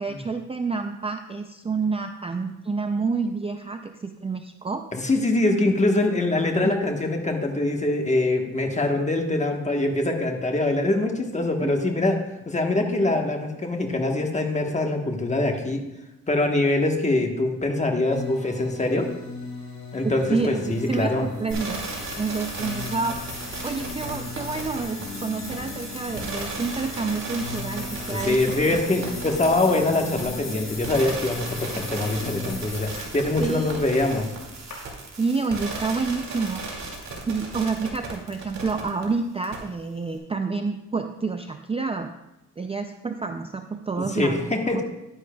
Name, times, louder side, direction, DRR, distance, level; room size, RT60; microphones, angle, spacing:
voice 1, 0.0-4.8 5.5-5.8 6.6-6.7 11.6-11.8 20.0-21.8 22.2-28.4 28.7-29.2 33.4-33.8 35.2-36.6 37.3-42.1 42.6-44.5 44.7-44.8, right 4 dB, 20° right, 6 dB, 0.4 m, -29 dB
voice 2, 4.9-12.2 12.4-15.8 16.3-19.1 19.9-21.3 28.1-34.3 44.0-44.8, left 2 dB, 20° left, 3 dB, 1.2 m, -24 dB
sound 1, 18.1-32.6, left 4 dB, 60° left, 2.6 m, -39 dB
sound 2, 20.4-34.7, left 4 dB, 80° left, 2.7 m, -41 dB
sound 3, 21.5-39.0 39.4-39.6, right 3 dB, 60° right, 2.3 m, -36 dB
11.0 x 10.0 x 2.3 m, 0.94 s
cardioid pair, 105°, 32 cm